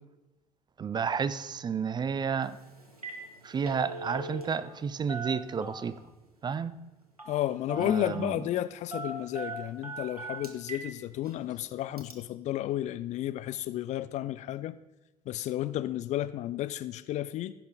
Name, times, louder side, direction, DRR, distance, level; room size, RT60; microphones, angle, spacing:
voice 1, 0.8-2.6 3.4-6.0 6.4-6.7 7.8-8.4, right 6 dB, 25° right, 0.4 m, -31 dB
Telephone, 2.4-2.6 2.9-3.2 3.5-4.8 5.1-6.0 7.2-7.4 7.7-8.4 8.9-10.9 11.3-11.4 12.0-12.1, right 2 dB, 90° right, 0.9 m, -40 dB
voice 2, 7.3-14.8 15.3-17.5, left 13 dB, 40° left, 0.4 m, -32 dB
15.5 x 5.8 x 3.9 m
figure-of-eight pair, 55°, 19 cm